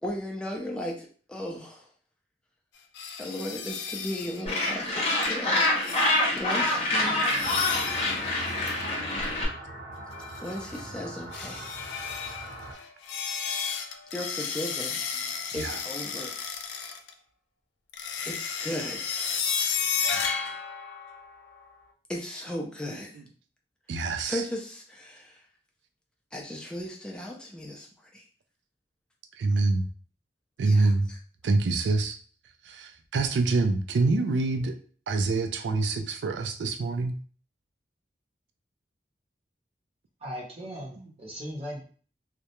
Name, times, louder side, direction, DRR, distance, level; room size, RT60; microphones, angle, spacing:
voice 1, 0.0-1.9 3.2-5.7 6.3-7.3 10.4-11.7 14.1-15.0 15.5-16.4 18.2-19.1 22.1-23.1 24.2-25.3 26.3-27.9 28.1-28.2 30.7-30.9, left 1 dB, 5° left, -1 dB, 0.4 m, -36 dB
sound 1, 3.0-4.4 4.9-5.0 5.2-5.4 5.6-6.4 7.2-9.4 10.1-10.9 11.3-17.1 17.9-21.6, left 6 dB, 80° left, 0.4 m, -33 dB
Gull seagull, 4.5-9.5, left 2 dB, 35° left, 0.7 m, -26 dB
sound 2, 7.4-12.7, right 1 dB, 60° right, 0.9 m, -41 dB
voice 2, 23.9-24.4 29.4-29.8 30.6-31.1 31.4-32.2 32.6-34.8 35.1-37.1, right 3 dB, 80° right, 6 dB, 0.3 m, -26 dB
voice 3, 40.2-41.8, equal, 35° right, -3 dB, 0.7 m, -38 dB
2.3 x 2.1 x 2.9 m, 0.42 s
head